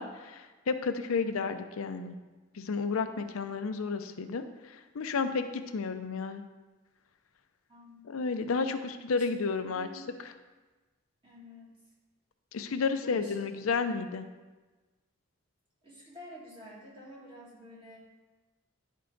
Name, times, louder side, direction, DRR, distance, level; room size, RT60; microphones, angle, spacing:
voice 1, 0.0-2.2 2.5-5.4 5.7-6.4 8.1-9.9 12.5-14.3, left 4 dB, 85° left, 8 dB, 0.5 m, -32 dB
voice 2, 7.7-8.1 9.7-10.1 11.2-11.8 12.9-13.5 15.8-18.0, equal, 25° right, -6 dB, 2.0 m, -49 dB
10.0 x 4.6 x 3.8 m, 1.2 s
head